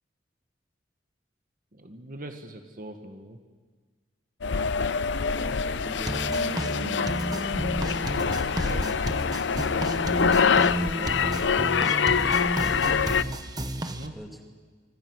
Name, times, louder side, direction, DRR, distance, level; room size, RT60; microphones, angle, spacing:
voice 1, 1.7-3.4 7.6-9.8 10.7-11.7 13.8-14.1, right 1 dB, 50° right, 5 dB, 1.6 m, -42 dB
sound 1, 4.4-13.2, left 6 dB, 90° left, 0.6 m, -25 dB
voice 2, 5.3-7.0 10.6-11.1 11.5-13.0 14.1-14.4, equal, ahead, 1 dB, 2.6 m, -43 dB
sound 2, 6.1-14.1, right 1 dB, 20° right, 1.2 m, -32 dB
25.5 x 25.5 x 6.3 m, 1.5 s
head